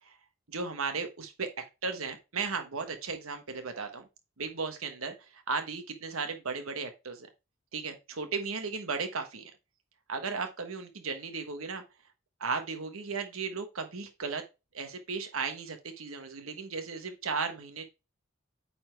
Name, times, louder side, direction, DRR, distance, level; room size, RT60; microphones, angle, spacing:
voice 1, 0.5-4.1 4.4-7.3 7.7-9.5 10.1-11.8 12.4-14.4 14.7-17.8, right 4 dB, 85° right, 7 dB, 1.3 m, -35 dB
9.0 x 4.3 x 3.3 m, 0.27 s
head